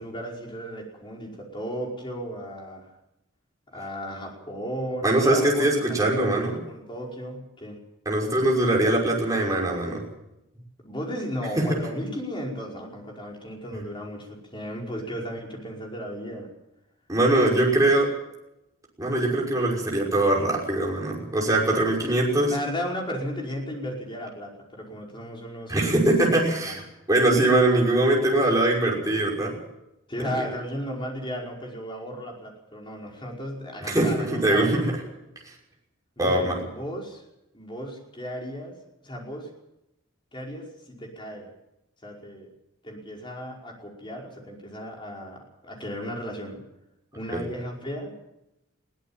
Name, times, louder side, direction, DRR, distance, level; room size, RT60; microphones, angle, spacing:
voice 1, 0.0-2.9 3.7-6.0 6.3-6.4 6.7-7.8 10.8-16.5 22.5-26.8 30.1-34.9 36.2-37.2 37.5-39.5 40.3-41.5 42.0-42.5 42.8-46.6 47.1-48.1, equal, 25° left, -1 dB, 5.3 m, -35 dB
voice 2, 5.0-6.6 8.1-10.0 17.1-18.1 19.0-22.5 25.7-26.8 27.1-29.6 30.2-30.4 33.9-34.9 36.2-36.6 47.3-47.4, right 1 dB, 15° right, -2 dB, 5.9 m, -22 dB
22.0 x 17.0 x 7.4 m, 0.88 s
head